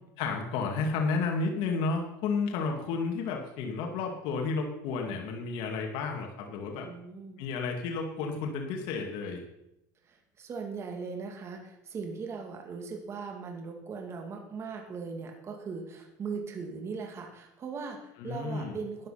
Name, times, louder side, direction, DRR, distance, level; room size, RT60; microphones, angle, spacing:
voice 1, 0.2-6.9 7.4-9.4 18.2-18.8, left 4 dB, 65° left, 2 dB, 2.3 m, -32 dB
voice 2, 6.8-7.4 10.0-19.1, right 5 dB, 30° right, 2 dB, 2.3 m, -39 dB
13.0 x 9.8 x 5.8 m, 0.85 s
cardioid pair, 140°, 9 cm